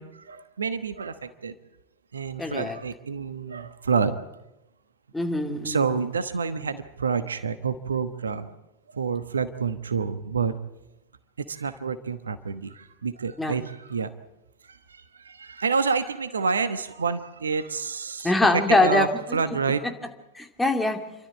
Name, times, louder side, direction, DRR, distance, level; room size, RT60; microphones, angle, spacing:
voice 1, 0.0-1.5 2.1-4.2 5.6-8.5 8.9-10.5 11.5-14.1 14.7-19.9, right 5 dB, 75° right, 12 dB, 1.1 m, -28 dB
voice 2, 2.4-2.8 5.1-5.9 13.4-13.6 18.2-19.4 20.3-21.0, left 2 dB, 5° left, 4 dB, 2.7 m, -23 dB
29.0 x 13.0 x 8.5 m, 0.95 s
figure-of-eight pair, 85°, 0 cm